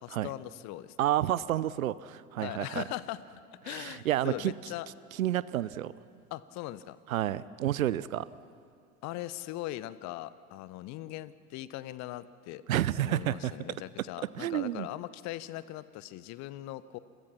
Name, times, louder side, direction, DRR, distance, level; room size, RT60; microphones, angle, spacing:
voice 1, 0.0-1.0 2.4-3.2 3.5-4.9 6.3-7.0 9.0-12.6 13.0-17.0, left 15 dB, 40° left, 17 dB, 0.9 m, -40 dB
voice 2, 1.0-2.8 3.7-4.5 5.2-5.9 7.1-8.3 12.7-13.5 14.4-14.9, right 12 dB, 65° right, 19 dB, 0.8 m, -30 dB
29.5 x 22.5 x 5.9 m, 2.4 s
figure-of-eight pair, 75°, 44 cm